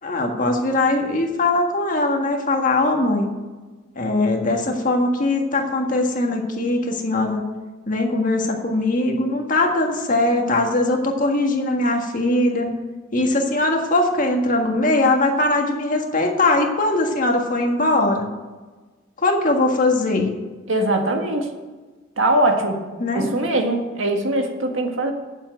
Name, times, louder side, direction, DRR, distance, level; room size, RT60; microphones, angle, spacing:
voice 1, 0.0-3.3 3.9-7.4 7.9-12.7 13.1-18.3 19.2-20.3 23.0-23.3, left 2 dB, 45° left, 2 dB, 1.7 m, -20 dB
voice 2, 20.7-21.5 22.2-22.8 23.1-25.1, right 1 dB, 75° right, 4 dB, 1.6 m, -21 dB
9.2 x 7.4 x 7.6 m, 1.3 s
head